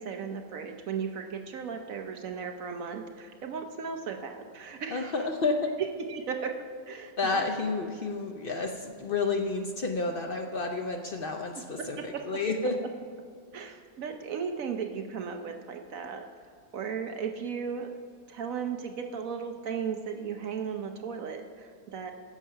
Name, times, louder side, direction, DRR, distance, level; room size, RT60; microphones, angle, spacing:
voice 1, 0.0-5.2 5.8-7.4 11.8-12.2 13.5-16.3 16.7-17.9 18.3-22.1, right 6 dB, 65° right, 5 dB, 1.0 m, -36 dB
voice 2, 4.9-5.7 7.2-12.8, left 3 dB, 65° left, 3 dB, 0.5 m, -30 dB
11.0 x 7.3 x 5.6 m, 2.2 s
omnidirectional pair, 1.8 m